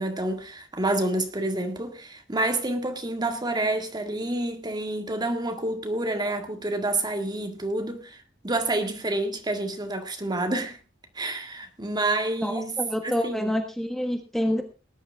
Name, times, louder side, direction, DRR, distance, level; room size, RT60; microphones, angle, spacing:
voice 1, 0.0-10.8 11.2-12.7 13.0-13.5, right 2 dB, 20° right, 1.9 m, -28 dB
voice 2, 12.4-14.6, equal, ahead, 1.4 m, -27 dB
19.5 x 11.0 x 3.5 m
head